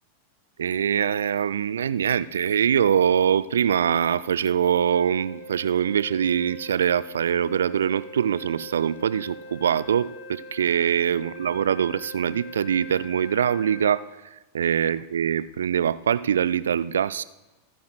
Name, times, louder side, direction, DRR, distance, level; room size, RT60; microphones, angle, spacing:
voice 1, 0.6-14.0 14.5-17.2, right 8 dB, 65° right, 16 dB, 0.4 m, -23 dB
Wind instrument woodwind instrument, 4.9-14.0, left 1 dB, 45° left, 2.7 m, -43 dB
27.0 x 9.2 x 2.2 m, 1.1 s
figure-of-eight pair, 90°, 0 cm